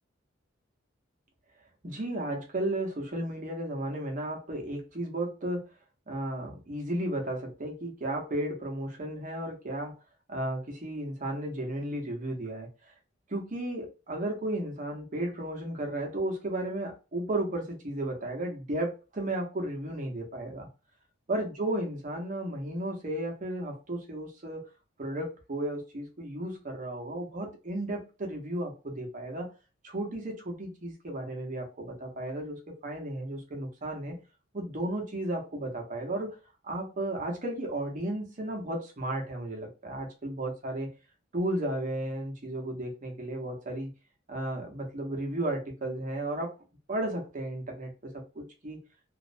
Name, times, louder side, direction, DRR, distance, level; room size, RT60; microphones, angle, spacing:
voice 1, 1.8-5.7 6.1-9.9 10.3-12.7 13.3-20.7 21.3-24.6 25.0-29.5 29.8-34.2 34.5-36.4 36.6-40.9 41.3-43.9 44.3-46.5 46.9-48.8, right 1 dB, 45° right, 0.8 m, -34 dB
2.5 x 2.0 x 2.5 m
head